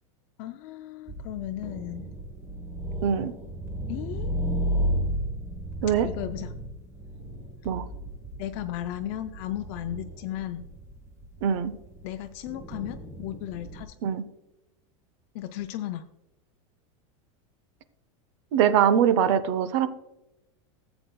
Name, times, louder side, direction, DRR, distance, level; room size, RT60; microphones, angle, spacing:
voice 1, 0.4-2.1 3.9-4.3 5.9-6.5 8.4-10.6 12.0-13.9 15.3-16.0, left 12 dB, 45° left, 7 dB, 0.4 m, -35 dB
sound 1, 1.1-13.9, right 1 dB, 15° right, 1.0 m, -34 dB
voice 2, 3.0-3.3 5.8-6.1 7.6-7.8 11.4-11.7 14.0-14.2 18.5-19.9, right 8 dB, 60° right, 14 dB, 0.7 m, -22 dB
14.0 x 7.9 x 2.2 m, 0.92 s
supercardioid pair, 155°, 17 cm